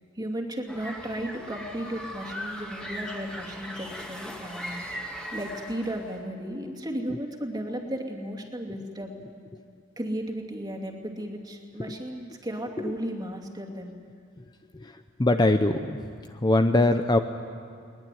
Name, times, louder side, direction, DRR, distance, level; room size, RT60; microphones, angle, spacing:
voice 1, 0.2-9.3 10.0-14.0, equal, 20° right, 1 dB, 2.6 m, -35 dB
sound 1, 0.7-6.2, equal, 5° left, 2.3 m, -39 dB
voice 2, 14.7-16.0 16.4-17.2, left 2 dB, 20° left, 7 dB, 0.7 m, -22 dB
21.5 x 20.0 x 9.3 m, 2.4 s
head